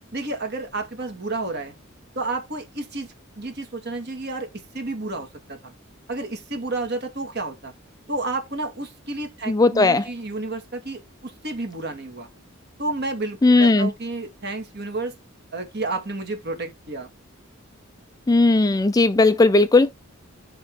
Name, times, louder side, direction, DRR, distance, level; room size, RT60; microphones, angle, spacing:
voice 1, 0.1-1.7 2.2-3.1 3.4-5.7 6.1-7.7 8.1-12.3 12.8-15.1 15.5-17.1, right 2 dB, 50° right, 2.3 m, -31 dB
voice 2, 9.5-10.1 13.4-13.9 18.3-19.9, left 2 dB, 15° left, 0.4 m, -17 dB
10.5 x 3.9 x 3.8 m
head